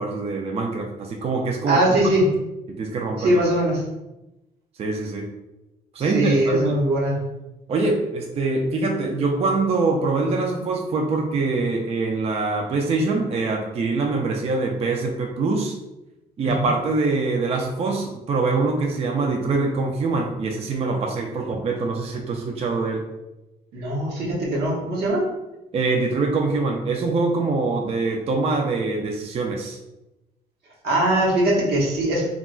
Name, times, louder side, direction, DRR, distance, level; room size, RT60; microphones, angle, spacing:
voice 1, 0.0-2.0 2.7-3.4 4.8-5.3 5.9-6.8 7.7-15.8 16.4-23.1 25.7-29.8, right 3 dB, 40° right, 2 dB, 0.4 m, -24 dB
voice 2, 1.7-2.3 3.2-3.8 6.1-7.2 16.4-16.7 23.7-25.3 30.8-32.2, right 1 dB, 80° right, -3 dB, 0.9 m, -21 dB
2.3 x 2.0 x 3.7 m, 0.97 s
cardioid pair, 90°, 16 cm